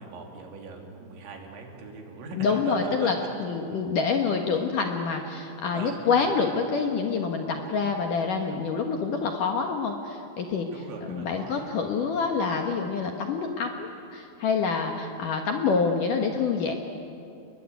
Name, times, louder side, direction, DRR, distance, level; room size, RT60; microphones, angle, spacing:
voice 1, 0.0-3.3 5.7-6.2 8.5-8.6 10.7-11.6, right 3 dB, 75° right, 2 dB, 5.2 m, -40 dB
voice 2, 2.4-10.7 11.1-16.7, left 5 dB, 65° left, 3 dB, 2.3 m, -27 dB
29.5 x 21.5 x 9.3 m, 2.7 s
omnidirectional pair, 5.3 m